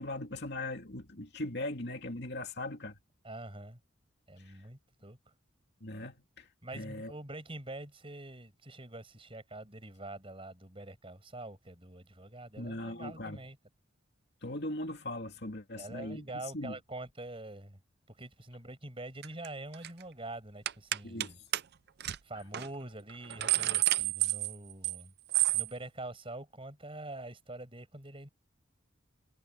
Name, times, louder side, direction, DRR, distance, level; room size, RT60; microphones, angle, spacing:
voice 1, 0.0-3.0 4.4-4.5 5.8-6.5 6.7-7.1 12.6-13.4 14.4-16.8 21.0-21.4, left 1 dB, 55° left, 2.6 m, -39 dB
voice 2, 3.2-3.8 4.3-5.2 6.6-13.6 15.8-17.8 18.1-21.4 22.2-25.1 25.5-28.3, right 2 dB, 25° right, 6.0 m, -45 dB
sound 1, 19.2-19.5 19.7-20.0 20.7-21.3 21.5-21.6 22.0-22.2 22.5-22.7 23.1-25.0 25.3-25.7, right 16 dB, 50° right, 0.5 m, -29 dB
head